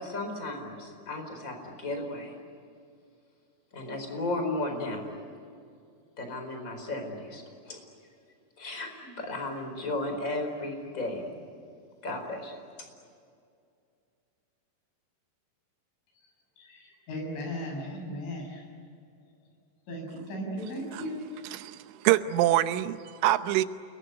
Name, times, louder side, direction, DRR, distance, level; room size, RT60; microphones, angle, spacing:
voice 1, 0.0-2.3 3.7-5.0 6.2-7.8 8.6-11.4 12.0-12.5, left 2 dB, 20° left, 5 dB, 4.4 m, -34 dB
voice 2, 16.6-18.7 19.9-21.5, equal, 80° left, 1 dB, 9.4 m, -37 dB
voice 3, 21.5-23.7, right 14 dB, 85° right, 11 dB, 3.4 m, -25 dB
29.5 x 22.0 x 9.3 m, 2.4 s
omnidirectional pair, 5.4 m